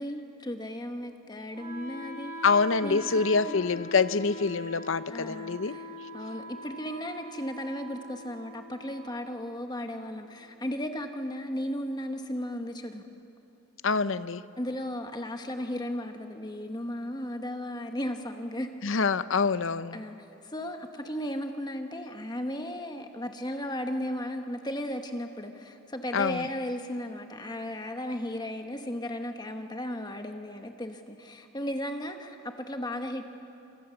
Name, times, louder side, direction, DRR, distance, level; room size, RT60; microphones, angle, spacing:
voice 1, 0.0-2.3 2.8-3.1 3.4-3.8 5.1-13.0 14.6-18.7 19.9-20.2 20.4-33.3, left 1 dB, 20° left, 5 dB, 1.2 m, -35 dB
Wind instrument woodwind instrument, 1.5-11.5, left 1 dB, 30° right, 7.7 m, -43 dB
voice 2, 2.4-5.7 13.8-14.4 18.8-20.0 26.1-26.4, left 4 dB, 65° left, 14 dB, 0.7 m, -26 dB
28.5 x 27.0 x 7.0 m, 2.8 s
head